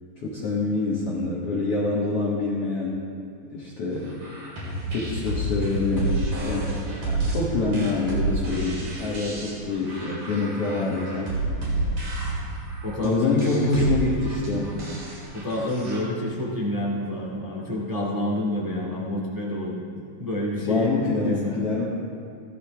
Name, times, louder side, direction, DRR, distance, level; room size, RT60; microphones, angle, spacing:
voice 1, 0.2-3.1 3.5-4.6 4.9-6.8 7.1-11.3 13.0-14.7 20.6-21.9, left 3 dB, 55° left, -5 dB, 1.9 m, -26 dB
sound 1, 4.1-16.0, right 2 dB, 60° right, 5.5 m, -29 dB
voice 2, 12.8-13.9 14.5-14.9 15.3-19.8 20.2-20.9 21.2-21.6, left 1 dB, 15° right, -4 dB, 0.7 m, -28 dB
17.0 x 13.5 x 3.5 m, 2.4 s
omnidirectional pair, 4.2 m